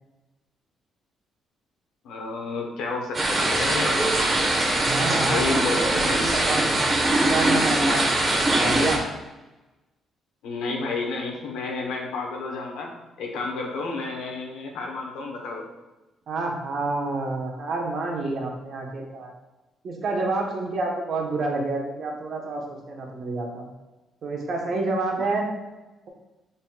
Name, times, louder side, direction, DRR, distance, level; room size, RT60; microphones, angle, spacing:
voice 1, 2.0-4.0 5.3-6.2 10.4-15.7, left 3 dB, 90° left, 1 dB, 0.9 m, -31 dB
sound 1, 3.1-9.0, right 1 dB, 35° right, 1.0 m, -22 dB
voice 2, 4.8-6.7 7.1-9.0 16.3-19.3 19.8-23.7 24.2-25.5, right 3 dB, 60° right, 0 dB, 1.0 m, -29 dB
5.5 x 4.0 x 2.3 m, 1.1 s
cardioid pair, 90°, 0 cm